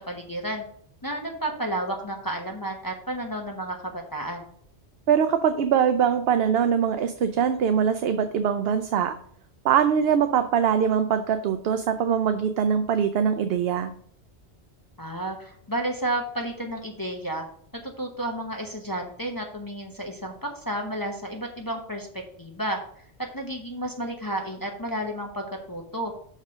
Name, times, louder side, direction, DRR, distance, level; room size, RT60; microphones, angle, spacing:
voice 1, 0.1-0.6 1.0-4.4 15.0-17.4 17.8-22.8 23.2-26.1, right 1 dB, 20° left, 1 dB, 0.9 m, -31 dB
voice 2, 5.1-9.2 9.6-13.9, right 7 dB, 70° right, 9 dB, 0.8 m, -22 dB
6.0 x 4.4 x 6.2 m, 0.63 s
omnidirectional pair, 1.1 m